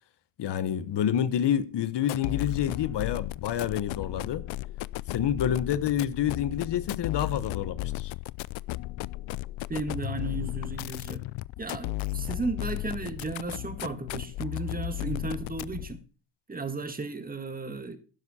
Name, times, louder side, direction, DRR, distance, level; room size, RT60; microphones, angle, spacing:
voice 1, 0.4-4.4 5.1-8.1, left 9 dB, 60° left, 1.2 m, -28 dB
sound 1, 2.0-16.0, left 18 dB, 75° left, 0.5 m, -35 dB
voice 2, 9.7-11.3 11.6-16.0 16.5-18.0, right 3 dB, 20° right, 1.8 m, -34 dB
12.0 x 10.0 x 4.3 m
cardioid pair, 100°, 48 cm